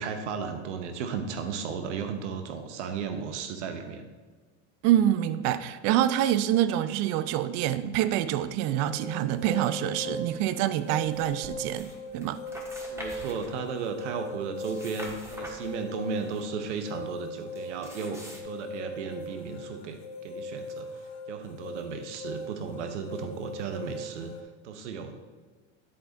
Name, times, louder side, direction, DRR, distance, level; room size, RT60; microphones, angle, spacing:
voice 1, 0.0-4.1 12.9-24.3 24.6-25.1, right 5 dB, 80° right, 7 dB, 0.9 m, -35 dB
voice 2, 4.8-12.4, right 12 dB, 45° right, 14 dB, 0.5 m, -26 dB
sound 1, 8.8-24.4, left 1 dB, 35° left, 1.2 m, -40 dB
sound 2, 11.0-12.0 12.2-13.9 14.4-16.4 17.5-18.4, equal, 10° right, 1.4 m, -45 dB
11.0 x 4.0 x 3.9 m, 1.4 s
hypercardioid pair, 105°, 35 cm